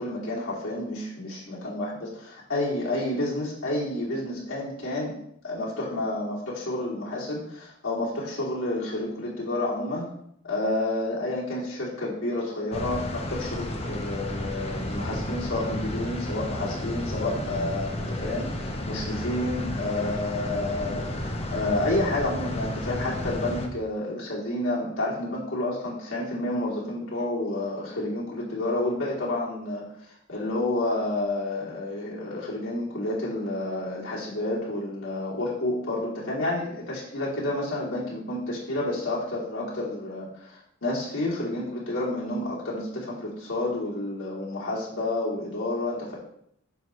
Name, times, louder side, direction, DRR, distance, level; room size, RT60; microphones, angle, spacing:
voice 1, 0.0-5.1 5.4-10.1 10.4-46.2, left 1 dB, 70° left, -7 dB, 2.8 m, -30 dB
sound 1, 12.7-23.7, left 1 dB, 30° left, 1.0 m, -32 dB
9.3 x 6.4 x 3.2 m, 0.70 s
head